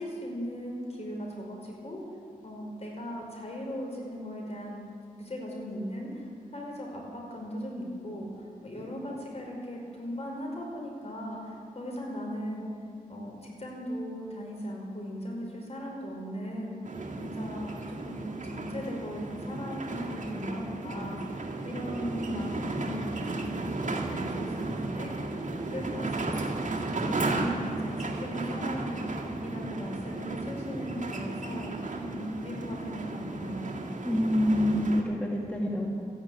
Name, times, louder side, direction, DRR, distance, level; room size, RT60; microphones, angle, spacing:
voice 1, 0.0-2.0 2.4-4.9 5.2-12.7 13.1-16.8 17.2-23.5 23.9-25.1 25.5-26.3 26.8-33.8, equal, 45° left, -1 dB, 5.1 m, -38 dB
sound 1, 16.8-35.0, right 2 dB, 60° right, 2.0 m, -34 dB
voice 2, 34.0-35.9, equal, 10° left, -3 dB, 2.3 m, -26 dB
14.5 x 11.0 x 9.0 m, 2.5 s
wide cardioid pair, 75°, 15 cm